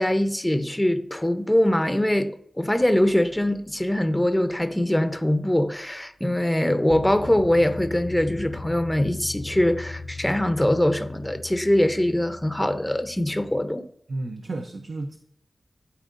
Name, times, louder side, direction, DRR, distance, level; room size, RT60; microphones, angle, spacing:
voice 1, 0.0-13.8, left 1 dB, 10° left, 0.6 m, -23 dB
sound 1, 2.8-3.0 6.9-13.7, left 3 dB, 60° left, 0.5 m, -39 dB
voice 2, 14.1-15.2, right 2 dB, 70° right, 0.6 m, -32 dB
12.5 x 4.5 x 2.5 m
wide cardioid pair, 95°, 0 cm